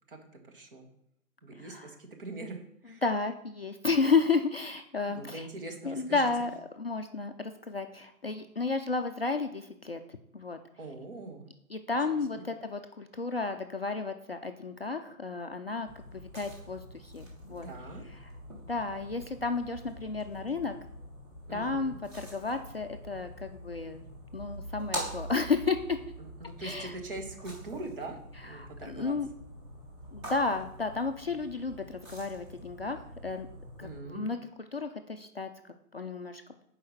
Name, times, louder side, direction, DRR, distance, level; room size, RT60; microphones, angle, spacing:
voice 1, 0.1-0.9 1.4-2.6 2.8-3.0 5.1-6.5 10.8-11.4 12.1-12.4 17.5-18.0 21.5-22.0 26.2-28.2 28.4-29.2 33.8-34.3, right 2 dB, 35° right, 4 dB, 1.3 m, -42 dB
voice 2, 1.5-1.9 3.0-5.5 5.8-6.5 6.8-10.0 10.3-10.6 11.7-17.7 18.2-18.3 18.7-20.7 21.5-24.1 24.3-26.0 26.6-27.0 28.5-29.3 30.1-33.5 33.8-35.5 35.9-36.4, left 4 dB, 45° left, 6 dB, 0.4 m, -32 dB
sound 1, 15.9-34.0, equal, 20° right, 1.7 m, -45 dB
7.6 x 4.8 x 6.3 m, 0.74 s
figure-of-eight pair, 150°, 45 cm